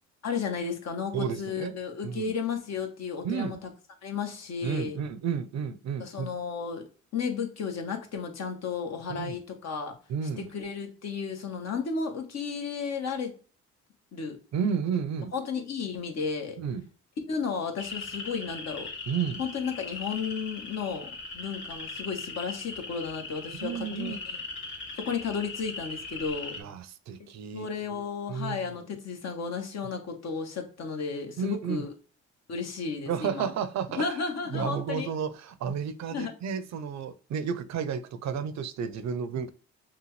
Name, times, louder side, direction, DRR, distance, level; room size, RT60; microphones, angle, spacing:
voice 1, 0.2-3.7 4.0-5.0 6.0-6.9 7.1-9.9 10.4-13.3 14.1-14.4 15.3-16.6 17.3-18.9 19.4-21.1 21.3-24.4 25.0-26.6 27.5-31.9 32.5-33.5 33.9-35.1 36.1-36.3, left 5 dB, 60° left, 1.1 m, -33 dB
voice 2, 1.1-1.8 2.0-2.3 3.2-3.6 4.6-6.3 9.1-9.4 10.1-10.5 14.5-15.3 16.6-16.9 19.1-19.4 23.6-24.2 26.6-28.0 28.3-28.6 31.4-31.9 33.1-34.1 34.5-39.5, right 7 dB, 65° right, 0.6 m, -32 dB
sound 1, 17.8-26.6, left 4 dB, 40° left, 2.3 m, -39 dB
5.8 x 2.3 x 3.1 m
cardioid pair, 90°, 30 cm